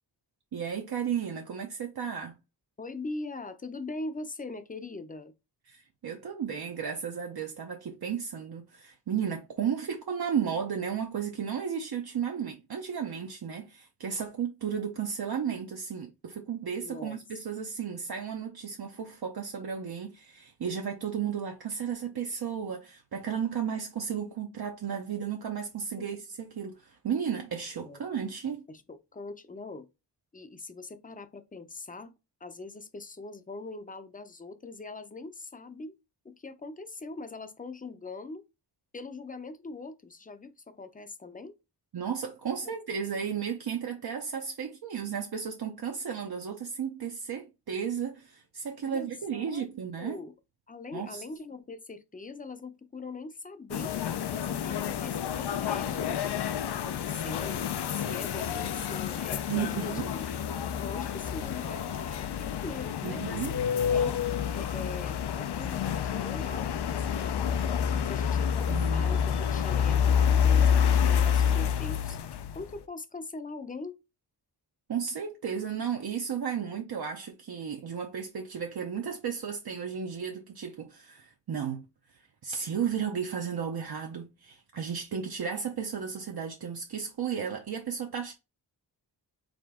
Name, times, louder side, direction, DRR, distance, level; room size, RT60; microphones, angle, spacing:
voice 1, 0.5-2.4 5.7-28.6 41.9-50.2 50.9-51.2 59.5-60.1 63.0-63.5 68.7-69.5 74.9-81.8 82.4-88.3, right 7 dB, 60° right, 0.7 m, -34 dB
voice 2, 2.8-5.3 16.8-17.2 26.0-26.2 27.8-28.0 28.7-29.9 30.3-32.1 32.4-35.9 36.2-38.4 38.9-41.6 48.9-49.7 50.0-50.3 50.7-53.9 54.3-56.4 56.7-57.6 57.9-60.3 60.8-63.5 63.9-64.2 64.5-67.7 68.1-72.2 72.5-74.0, left 3 dB, 20° left, 0.6 m, -42 dB
sound 1, 53.7-72.8, left 8 dB, 65° left, 0.5 m, -28 dB
5.0 x 2.5 x 3.6 m
wide cardioid pair, 130°, 42 cm